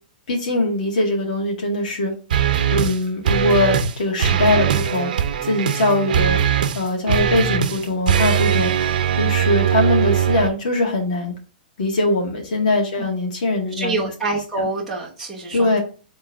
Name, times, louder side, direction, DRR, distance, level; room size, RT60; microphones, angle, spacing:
voice 1, 0.3-2.1 2.7-6.4 6.7-11.3 11.8-14.1 15.5-15.8, left 2 dB, 55° left, 1 dB, 2.1 m, -21 dB
sound 1, 2.3-3.0 3.3-3.9 4.2-10.5, right 9 dB, 60° right, 0.8 m, -20 dB
voice 2, 13.7-15.8, right 3 dB, ahead, -5 dB, 1.1 m, -26 dB
5.0 x 3.8 x 5.6 m, 0.38 s
hypercardioid pair, 170°, 5 cm